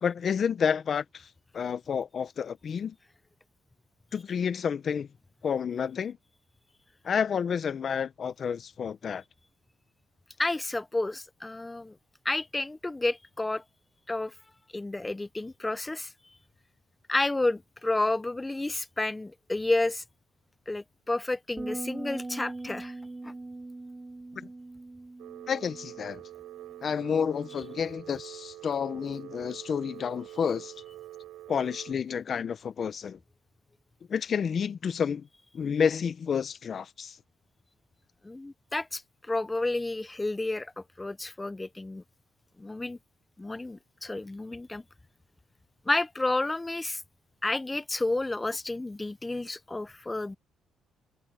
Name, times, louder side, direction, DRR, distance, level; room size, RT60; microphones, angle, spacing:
voice 1, 0.0-2.9 4.1-5.1 5.4-6.2 7.0-9.2 24.4-24.5 25.5-26.2 26.8-30.7 31.5-33.2 34.1-35.3 35.5-37.2, left 7 dB, 50° left, 0.8 m, -30 dB
voice 2, 10.4-12.0 12.2-13.6 14.1-14.3 14.7-16.1 17.1-20.0 20.7-22.9 23.2-23.3 38.2-42.0 42.6-43.0 43.4-44.8 45.9-47.0 47.4-50.4, left 2 dB, 15° left, 0.7 m, -31 dB
sound 1, 21.6-27.8, right 2 dB, 20° right, 6.2 m, -42 dB
Telephone, 25.2-31.9, right 14 dB, 90° right, 5.8 m, -45 dB
cardioid pair, 90°, 0 cm